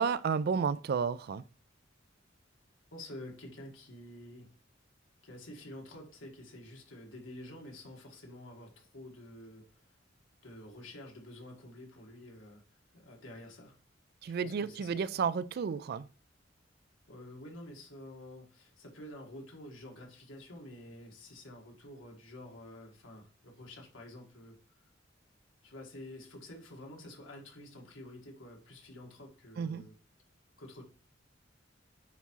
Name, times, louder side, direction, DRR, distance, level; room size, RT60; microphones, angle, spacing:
voice 1, 0.0-1.4 14.2-16.0 29.6-29.9, right 6 dB, 55° right, 0.3 m, -31 dB
voice 2, 2.9-4.5 5.2-9.6 10.4-12.6 12.9-13.8 14.2-15.0 17.1-24.6 25.6-29.9 30.6-30.8, left 1 dB, 90° left, 1.8 m, -49 dB
9.2 x 3.6 x 3.1 m
head